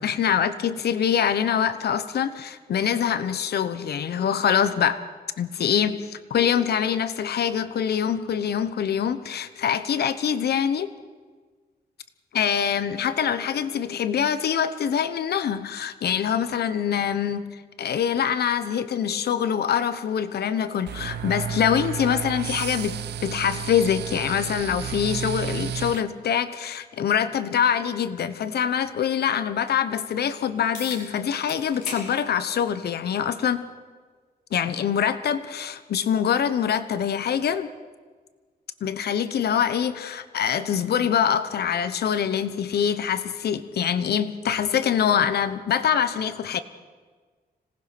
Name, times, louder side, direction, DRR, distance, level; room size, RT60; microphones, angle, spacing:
voice 1, 0.0-5.0 5.4-10.9 12.3-33.6 34.5-37.7 38.8-46.6, left 8 dB, 70° left, 12 dB, 1.0 m, -24 dB
sound 1, 20.9-26.0, right 9 dB, 85° right, 0.7 m, -32 dB
sound 2, 30.7-31.0 31.5-32.1 32.5-32.6 33.7-33.8 38.7-38.8, left 3 dB, 50° left, 5.3 m, -37 dB
26.0 x 19.0 x 6.0 m, 1.5 s
wide cardioid pair, 175°, 17 cm